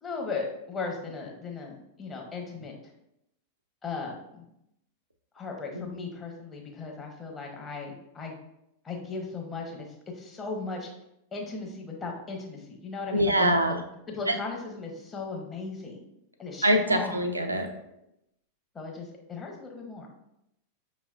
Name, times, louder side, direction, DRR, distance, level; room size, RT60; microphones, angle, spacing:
voice 1, 0.0-2.8 3.8-4.4 5.3-8.4 8.8-9.9 10.1-10.9 11.3-13.3 13.7-13.8 14.1-16.0 16.4-17.2 18.7-20.1, left 4 dB, 20° left, 0 dB, 0.9 m, -37 dB
voice 2, 13.1-13.8 14.3-14.4 16.6-17.7, right 1 dB, 80° right, 5 dB, 0.4 m, -24 dB
5.5 x 3.1 x 2.4 m, 0.81 s
figure-of-eight pair, 90°, 0 cm